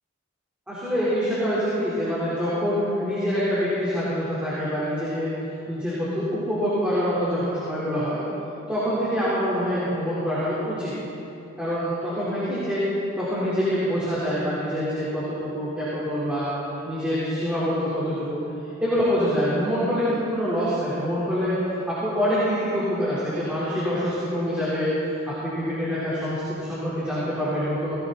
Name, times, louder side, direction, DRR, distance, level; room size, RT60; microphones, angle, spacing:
voice 1, 0.7-5.3 5.7-8.2 8.7-11.0 11.6-12.9 13.2-16.5 16.8-18.4 18.8-24.9 25.3-28.0, equal, 5° right, -11 dB, 3.9 m, -25 dB
19.5 x 17.0 x 4.1 m, 3.0 s
head